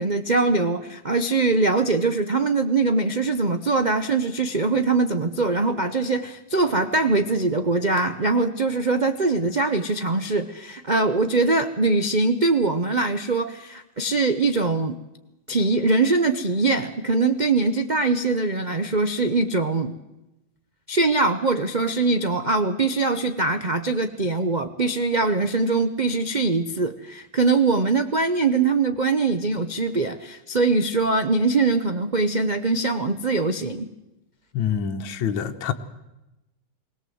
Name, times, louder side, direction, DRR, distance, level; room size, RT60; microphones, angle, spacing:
voice 1, 0.0-15.0 15.5-19.9 20.9-33.9, right 3 dB, 85° right, 8 dB, 0.4 m, -22 dB
voice 2, 34.5-35.7, left 8 dB, 70° left, 6 dB, 1.7 m, -26 dB
21.0 x 18.5 x 7.8 m, 0.96 s
omnidirectional pair, 2.2 m